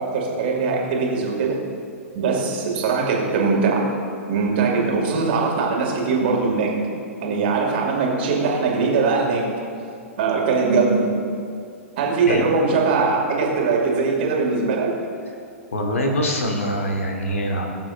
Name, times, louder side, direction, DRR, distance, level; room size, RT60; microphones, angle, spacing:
voice 1, 0.0-1.5 2.1-3.8 4.3-6.7 7.2-9.5 10.2-11.2 12.0-14.9, right 4 dB, 45° right, -1 dB, 2.2 m, -21 dB
voice 2, 15.7-17.7, equal, 65° left, 2 dB, 1.6 m, -23 dB
20.0 x 7.2 x 2.6 m, 2.4 s
figure-of-eight pair, 110°, 8 cm